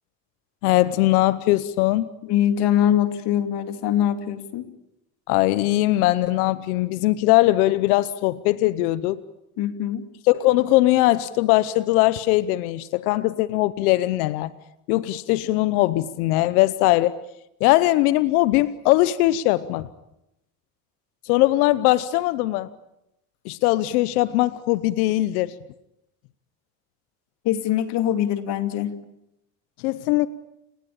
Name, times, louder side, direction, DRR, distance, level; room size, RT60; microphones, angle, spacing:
voice 1, 0.6-2.1 5.3-9.2 10.3-14.5 14.9-17.2 17.6-19.9 21.2-22.7 23.4-25.5 29.8-30.3, left 17 dB, 85° left, 1.0 m, -20 dB
voice 2, 2.2-4.7 9.6-10.1 27.4-29.0, left 10 dB, 65° left, 2.8 m, -23 dB
29.5 x 19.5 x 8.7 m
supercardioid pair, 75°, 43 cm